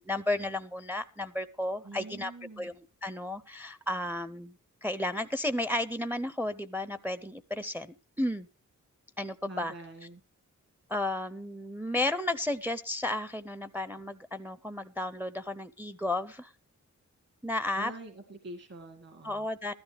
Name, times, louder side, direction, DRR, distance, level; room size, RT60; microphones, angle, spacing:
voice 1, 0.0-2.3 2.6-2.7 3.0-4.6 4.8-8.5 9.2-9.7 10.9-16.5 17.4-17.9 19.2-19.7, left 1 dB, 5° right, 13 dB, 0.5 m, -33 dB
voice 2, 1.8-2.7 9.4-10.2 17.8-19.5, right 2 dB, 50° right, 5 dB, 2.0 m, -45 dB
15.5 x 13.0 x 3.3 m, 0.35 s
wide cardioid pair, 115°, 31 cm